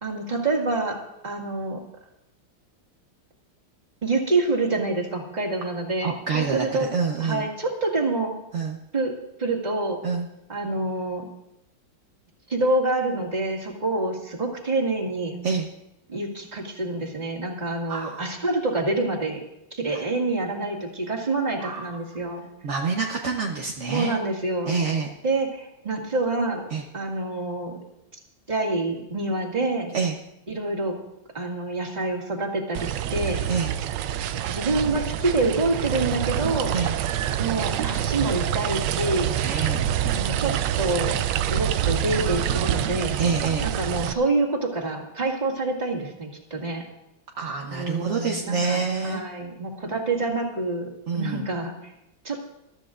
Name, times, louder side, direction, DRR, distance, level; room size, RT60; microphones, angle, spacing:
voice 1, 0.0-1.0 1.2-1.8 4.0-6.9 7.2-8.4 8.9-9.1 9.4-10.0 10.5-11.3 12.5-15.4 16.1-19.4 19.7-22.4 23.9-24.9 25.2-26.6 26.9-27.8 28.5-29.9 30.5-30.9 31.3-33.4 34.5-36.7 37.4-39.4 40.1-41.2 41.5-43.2 43.6-46.8 47.7-51.9 52.2-52.4, right 2 dB, 20° right, -2 dB, 2.1 m, -27 dB
voice 2, 6.0-7.5 8.5-8.8 10.0-10.2 15.4-15.6 17.9-18.2 21.6-21.9 22.6-24.1 24.7-25.1 26.7-26.8 29.9-30.1 33.5-33.7 36.7-36.9 39.4-39.9 43.2-43.7 47.4-49.2 51.1-51.4, right 5 dB, 50° right, 0 dB, 1.0 m, -26 dB
sound 1, 32.7-44.1, right 10 dB, 75° right, 1.1 m, -26 dB
22.0 x 13.0 x 2.5 m, 0.85 s
omnidirectional pair, 2.2 m